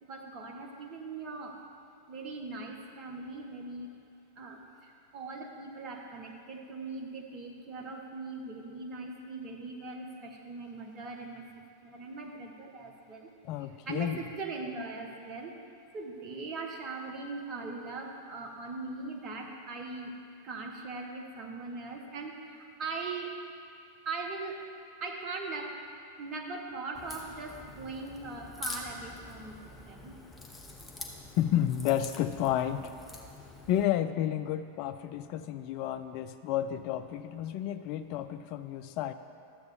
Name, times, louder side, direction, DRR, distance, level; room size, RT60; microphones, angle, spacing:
voice 1, 0.0-1.6 2.1-3.9 4.4-13.3 13.8-15.6 15.9-20.1 20.4-23.3 24.0-24.6 25.0-25.7 26.2-30.1, right 3 dB, 35° right, 2 dB, 1.2 m, -40 dB
voice 2, 13.4-14.2 31.3-32.9 33.7-39.1, left 11 dB, 45° left, 10 dB, 0.4 m, -31 dB
Crack, 26.9-33.8, left 2 dB, 15° left, 1.0 m, -46 dB
12.5 x 7.8 x 3.6 m, 2.7 s
figure-of-eight pair, 90°, 0 cm